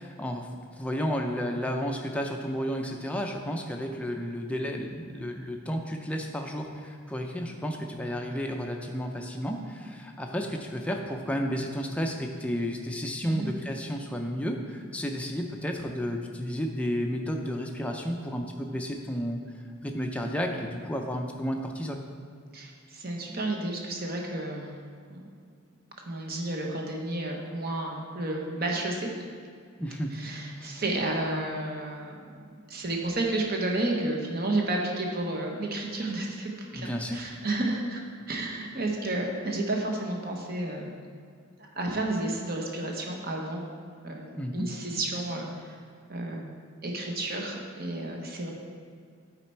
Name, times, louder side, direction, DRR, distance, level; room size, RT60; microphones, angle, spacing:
voice 1, 0.0-22.0 29.8-30.2 30.6-30.8 36.7-37.2 44.4-44.7, equal, 5° left, 2 dB, 0.4 m, -32 dB
voice 2, 22.5-24.8 25.1-25.3 26.0-29.1 30.1-32.2 32.7-38.0 38.3-41.0 41.6-43.6 44.0-45.8 46.1-48.5, right 2 dB, 45° right, 0 dB, 0.9 m, -31 dB
8.9 x 4.2 x 4.4 m, 2.1 s
head